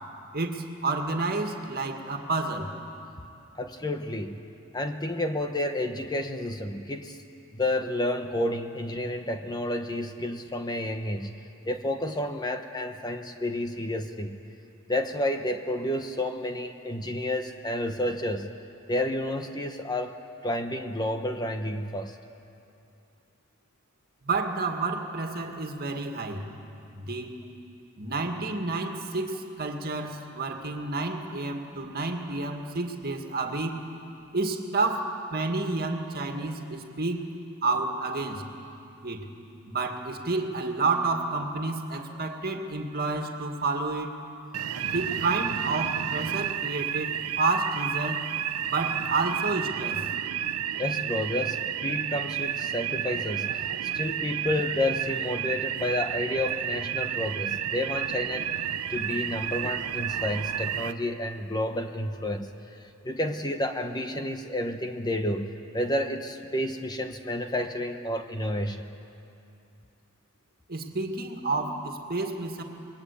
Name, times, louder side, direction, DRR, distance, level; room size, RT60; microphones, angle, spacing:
voice 1, 0.3-2.7 24.2-26.5 27.0-27.3 28.0-33.9 34.3-37.3 37.6-38.5 39.0-39.3 39.7-44.1 44.8-48.3 48.6-50.1 70.7-72.6, right 3 dB, 45° right, 4 dB, 2.1 m, -30 dB
voice 2, 3.6-4.5 4.7-7.2 7.5-14.4 14.9-18.5 18.9-22.2 50.8-53.6 53.9-58.5 58.9-68.9, left 1 dB, 20° left, 6 dB, 1.0 m, -30 dB
sound 1, 44.5-60.9, right 9 dB, 90° right, 0.8 m, -31 dB
28.0 x 22.0 x 8.5 m, 2.7 s
head